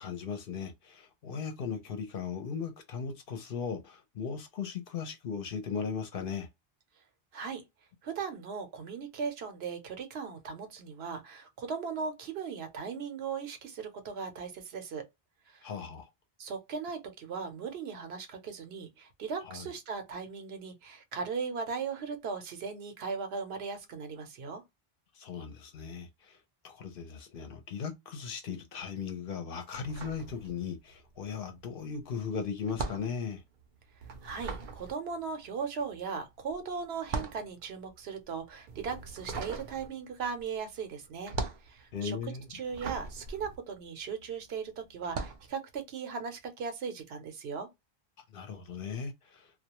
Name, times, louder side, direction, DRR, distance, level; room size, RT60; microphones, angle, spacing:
voice 1, 0.0-6.5 15.6-16.1 19.4-19.7 25.2-26.4 26.6-33.4 41.9-42.5 48.3-49.5, left 6 dB, 65° left, 0.8 m, -37 dB
voice 2, 8.0-15.0 15.5-15.7 16.4-24.6 34.2-41.3 41.6-42.2 42.5-47.7, right 5 dB, 75° right, 0.9 m, -38 dB
sound 1, 29.7-31.0 31.2-44.4 45.0-45.5, right 4 dB, 60° right, 0.6 m, -40 dB
2.3 x 2.1 x 2.9 m
omnidirectional pair, 1.0 m